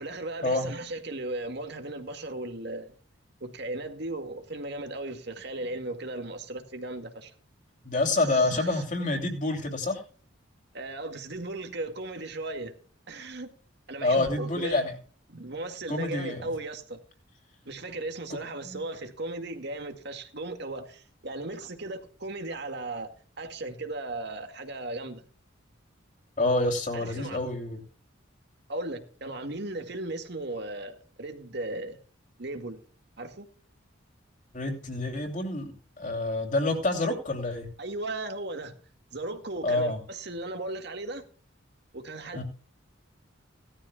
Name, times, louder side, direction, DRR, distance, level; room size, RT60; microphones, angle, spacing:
voice 1, 0.0-3.0 3.4-7.3 8.2-8.8 10.7-12.7 13.1-13.6 13.9-14.9 15.3-17.0 17.7-23.1 23.4-25.3 26.9-27.4 28.7-32.0 32.4-32.8 33.2-33.5 37.8-38.8 39.1-41.2 41.9-42.4, right 2 dB, 60° right, 2.0 m, -36 dB
voice 2, 7.8-10.0 14.0-15.0 15.9-16.5 18.6-18.8 26.4-27.8 34.5-37.7 39.6-40.0 42.3-42.4, left 2 dB, 40° left, 3.1 m, -27 dB
18.0 x 13.5 x 2.3 m
head